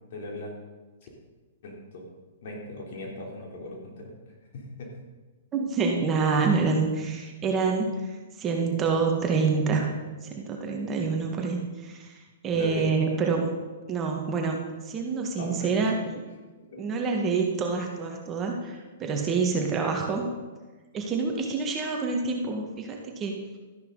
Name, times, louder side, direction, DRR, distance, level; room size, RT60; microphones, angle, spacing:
voice 1, 0.1-0.5 1.0-1.1 1.6-2.1 2.4-4.1 4.5-4.9 12.5-13.0 15.4-15.9 16.7-16.9, left 1 dB, 60° left, -1 dB, 3.5 m, -38 dB
voice 2, 5.5-8.1 8.4-9.9 10.2-12.2 12.4-13.6 13.9-16.2 16.8-20.3 20.9-23.4, right 4 dB, 25° right, 2 dB, 1.8 m, -27 dB
13.5 x 10.5 x 4.1 m, 1.3 s
hypercardioid pair, 120°, 0 cm